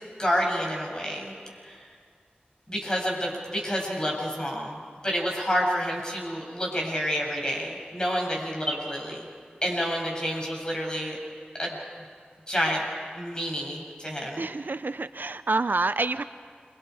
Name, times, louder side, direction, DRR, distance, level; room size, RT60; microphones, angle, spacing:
voice 1, 0.2-1.3 1.6-1.9 2.7-4.8 5.0-9.3 9.6-11.2 11.6-11.7 12.5-12.8 13.1-14.5, equal, 25° left, -1 dB, 7.5 m, -29 dB
voice 2, 14.4-16.2, right 3 dB, 65° right, 12 dB, 0.6 m, -27 dB
29.0 x 25.0 x 4.9 m, 2.1 s
wide cardioid pair, 40°, 3 cm